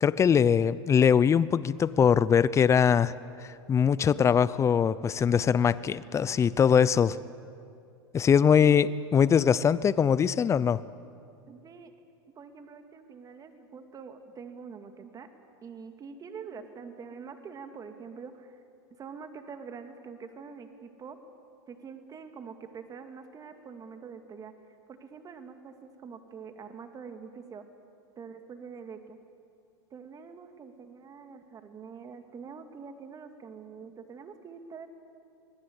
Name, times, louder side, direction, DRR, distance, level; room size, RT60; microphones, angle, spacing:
voice 1, 0.0-3.1 3.4-7.2 8.1-10.8, left 7 dB, 20° left, 18 dB, 0.7 m, -22 dB
voice 2, 11.5-11.9 12.4-15.3 15.6-18.6 19.0-21.2 21.7-24.5 24.9-27.7 28.2-29.2 29.9-34.9, right 6 dB, 25° right, 7 dB, 2.3 m, -45 dB
26.0 x 20.0 x 8.1 m, 2.5 s
hypercardioid pair, 115°, 14 cm